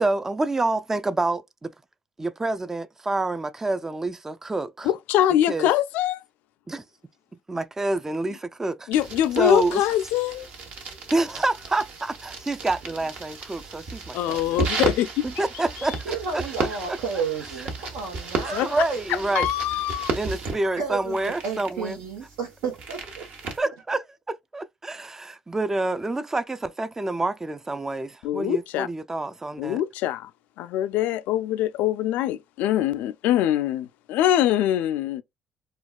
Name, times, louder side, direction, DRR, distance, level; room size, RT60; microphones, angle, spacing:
voice 1, 0.0-1.7 2.2-4.9 5.5-5.7 6.7-6.8 7.5-8.9 9.4-9.8 11.1-14.6 15.4-17.0 18.4-19.5 20.2-22.0 23.6-29.8, right 2 dB, 15° right, 0.3 m, -28 dB
voice 2, 4.8-6.2 8.9-10.5 14.1-15.3 18.5-20.1 28.2-28.9 29.6-30.3 30.6-35.2, left 12 dB, 75° left, 0.4 m, -24 dB
sound 1, 8.9-23.6, right 3 dB, 60° right, 1.0 m, -34 dB
voice 3, 16.0-19.0 20.8-23.2, right 5 dB, 90° right, 1.0 m, -32 dB
4.3 x 2.3 x 2.2 m
supercardioid pair, 80°, 3 cm